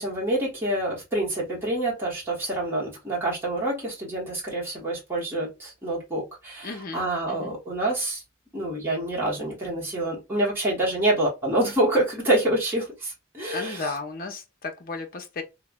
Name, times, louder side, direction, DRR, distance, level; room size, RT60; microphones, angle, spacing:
voice 1, 0.0-8.2 8.5-13.9, right 1 dB, 10° right, 1.1 m, -27 dB
voice 2, 6.6-7.6 13.5-15.4, left 3 dB, 45° left, 0.6 m, -34 dB
3.1 x 2.0 x 2.2 m
head